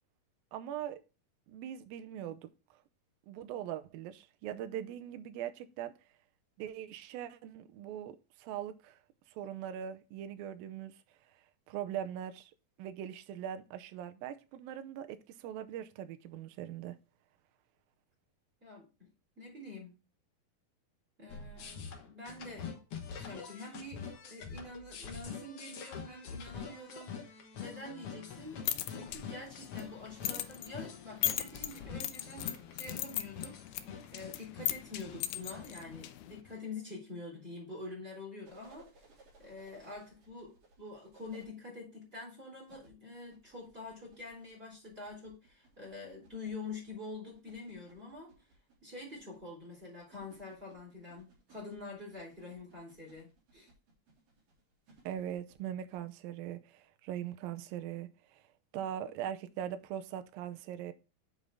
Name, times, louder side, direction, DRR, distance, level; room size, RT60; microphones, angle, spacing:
voice 1, 0.5-1.0 1.5-2.8 3.3-5.9 6.6-9.0 9.3-11.0 11.3-12.5 12.8-17.0 55.1-58.4 58.7-60.9, right 10 dB, 80° right, 2.4 m, -41 dB
voice 2, 18.6-19.1 19.4-19.9 21.2-22.7 23.0-33.6 34.1-39.0 39.4-48.3 48.8-53.7, left 3 dB, 15° right, 3.7 m, -46 dB
sound 1, 21.3-36.6, left 6 dB, 60° left, 1.5 m, -45 dB
sound 2, 28.4-36.4, left 12 dB, 85° left, 1.9 m, -39 dB
sound 3, 38.4-41.5 42.6-56.0 57.7-57.8, right 3 dB, 60° right, 4.7 m, -63 dB
8.2 x 5.4 x 3.5 m
omnidirectional pair, 4.4 m